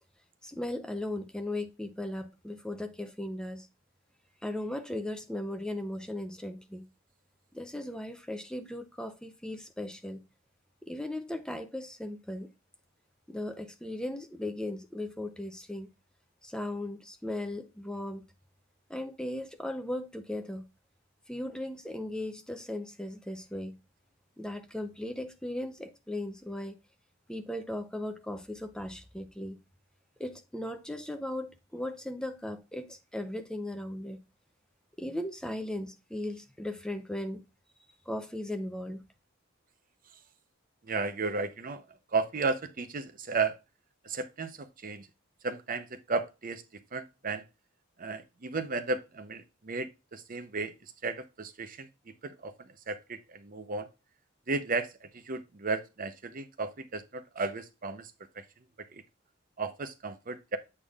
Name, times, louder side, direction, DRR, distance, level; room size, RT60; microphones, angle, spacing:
voice 1, 0.4-3.7 4.4-6.9 7.5-10.2 10.9-12.5 13.3-15.9 16.4-18.3 18.9-20.7 21.3-23.8 24.4-26.8 27.3-29.6 30.2-34.2 35.0-37.4 38.1-39.0, left 1 dB, 5° left, 0.6 m, -37 dB
voice 2, 40.8-43.6 44.0-45.1 45.4-46.6 46.9-47.4 48.0-51.9 52.2-53.9 54.5-58.4 58.9-59.0 59.6-60.6, right 4 dB, 45° right, 0.7 m, -34 dB
8.2 x 5.3 x 2.4 m
head